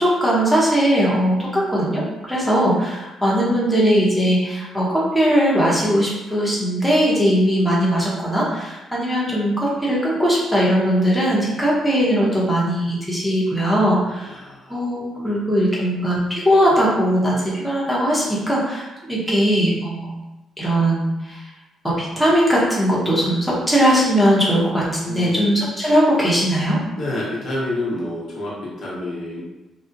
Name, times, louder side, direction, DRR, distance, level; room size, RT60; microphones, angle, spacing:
voice 1, 0.0-14.4 14.7-20.1 20.6-21.4 21.8-26.8, equal, ahead, -6 dB, 0.7 m, -19 dB
voice 2, 14.3-15.6 15.9-16.2 18.1-18.4 25.0-25.7 27.0-29.4, left 1 dB, 60° left, -6 dB, 0.8 m, -30 dB
2.4 x 2.0 x 2.6 m, 0.99 s
cardioid pair, 90°, 0 cm